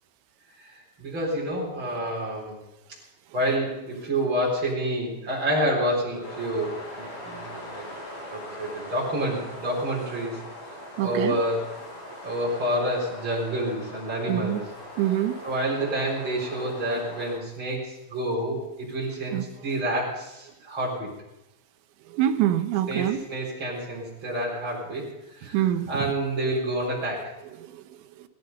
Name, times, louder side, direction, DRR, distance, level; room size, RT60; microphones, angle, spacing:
voice 1, 1.0-2.6 3.3-7.9 8.3-10.4 11.0-11.6 12.2-14.6 15.4-21.1 22.9-25.1 25.3-27.3, right 1 dB, 25° right, -3 dB, 4.6 m, -28 dB
sound 1, 6.2-17.3, left 1 dB, 65° left, 8.9 m, -41 dB
voice 2, 11.0-11.4 14.3-14.6 15.0-15.4 19.3-19.4 22.1-23.2 25.5-25.9, right 12 dB, 80° right, 9 dB, 3.2 m, -24 dB
17.0 x 14.0 x 5.4 m, 0.93 s
omnidirectional pair, 5.4 m